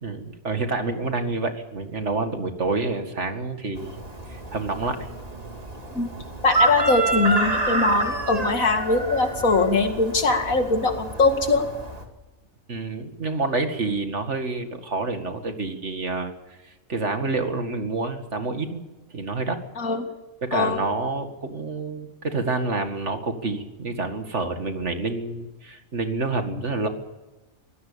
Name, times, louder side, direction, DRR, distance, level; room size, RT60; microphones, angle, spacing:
voice 1, 0.0-4.0 4.3-5.1 6.2-6.3 12.7-16.3 16.6-18.8 19.1-19.6 20.4-26.9, right 3 dB, 55° right, 6 dB, 2.4 m, -28 dB
Chicken rooster, 3.8-12.0, right 2 dB, 25° right, 2.6 m, -28 dB
voice 2, 6.4-11.7 19.8-20.0 20.5-20.8, left 3 dB, 75° left, 5 dB, 2.7 m, -21 dB
24.5 x 17.5 x 7.0 m, 1.1 s
omnidirectional pair, 1.5 m